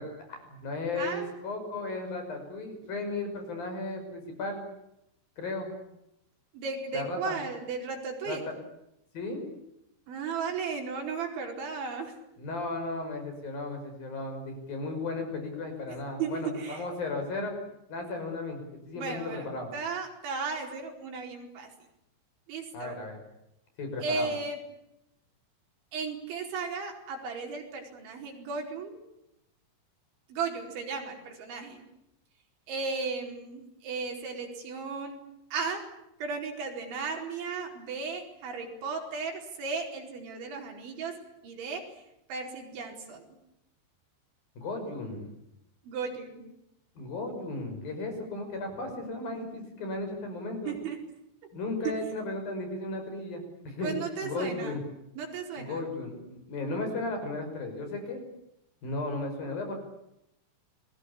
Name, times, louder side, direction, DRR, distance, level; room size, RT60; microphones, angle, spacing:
voice 1, 0.0-4.6 5.4-5.7 6.9-7.4 8.3-8.5 9.1-9.5 12.4-17.5 17.9-18.6 18.9-19.7 22.7-23.2 23.8-24.3 44.6-45.3 47.0-50.7 51.5-53.9 54.2-54.8 55.6-58.2 58.8-59.7, left 2 dB, 50° left, 5 dB, 7.6 m, -35 dB
voice 2, 1.0-1.3 6.5-8.4 10.1-12.1 15.9-16.8 19.0-21.7 22.5-23.0 24.0-24.6 25.9-29.0 30.3-31.8 32.7-35.2 35.5-35.9 36.2-42.0 42.3-43.3 45.8-46.4 50.7-51.0 51.9-52.0 53.8-54.8 55.2-55.9, right 5 dB, 75° right, 2 dB, 6.9 m, -35 dB
28.5 x 21.5 x 8.5 m, 0.82 s
omnidirectional pair, 5.3 m